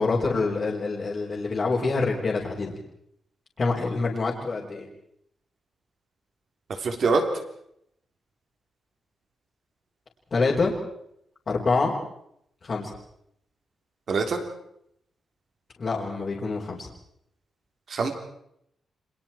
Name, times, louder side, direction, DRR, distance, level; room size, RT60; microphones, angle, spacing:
voice 1, 0.0-2.7 3.6-4.9 10.3-10.7 11.5-11.9 12.6-12.9 15.8-16.9, left 3 dB, 35° left, -5 dB, 4.5 m, -26 dB
voice 2, 6.8-7.2 14.1-14.4 17.9-18.1, right 4 dB, 50° right, 5 dB, 3.6 m, -24 dB
30.0 x 26.0 x 4.5 m, 0.75 s
wide cardioid pair, 155°, 0 cm